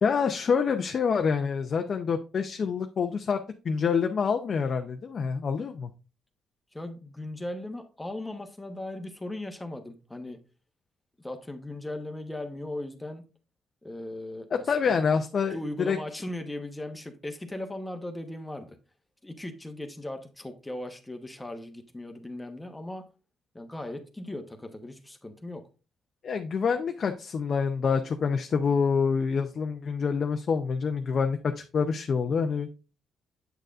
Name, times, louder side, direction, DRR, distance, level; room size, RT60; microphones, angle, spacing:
voice 1, 0.0-3.4 3.6-5.9 14.7-16.0 26.2-32.7, left 6 dB, 50° left, 0.6 m, -27 dB
voice 2, 6.7-10.4 11.2-13.2 13.8-15.0 15.5-18.8 19.2-23.1 23.5-25.6, left 1 dB, 10° left, 1.0 m, -38 dB
7.9 x 6.6 x 2.5 m
cardioid pair, 90°, 0 cm